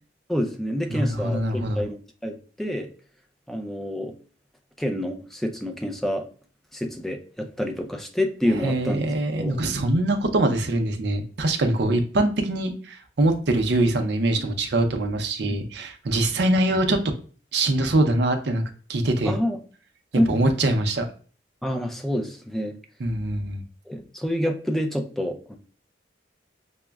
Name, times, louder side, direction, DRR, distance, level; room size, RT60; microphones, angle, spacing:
voice 1, 0.3-2.9 3.5-4.1 4.8-6.3 6.7-9.1 9.4-9.6 15.4-15.6 19.2-19.6 20.1-20.4 21.6-22.7 23.9-25.6, equal, ahead, 3 dB, 0.4 m, -27 dB
voice 2, 0.9-1.8 8.5-17.0 17.5-18.6 18.9-19.4 20.3-21.0 23.0-23.6, right 1 dB, 60° right, 5 dB, 0.6 m, -23 dB
5.9 x 2.1 x 2.2 m, 0.41 s
head